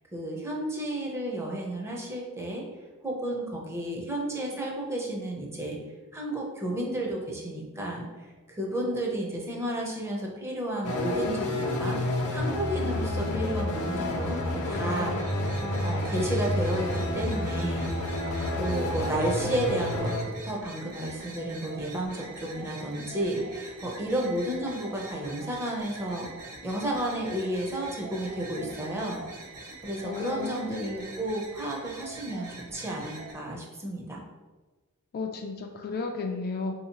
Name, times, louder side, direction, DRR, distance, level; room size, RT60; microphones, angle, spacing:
voice 1, 0.1-2.6 3.0-5.8 6.1-8.1 8.5-12.0 12.3-15.2 15.8-16.9 17.1-18.2 18.5-26.3 26.6-29.2 29.8-34.2, right 1 dB, 10° right, -1 dB, 0.5 m, -32 dB
sound 1, 10.8-20.2, left 1 dB, 90° left, 0.6 m, -29 dB
voice 2, 12.8-13.8 30.0-30.8 35.1-36.7, left 4 dB, 45° left, 4 dB, 0.3 m, -34 dB
sound 2, 14.6-33.3, right 2 dB, 85° right, 0.6 m, -44 dB
3.8 x 2.7 x 2.8 m, 1.3 s
head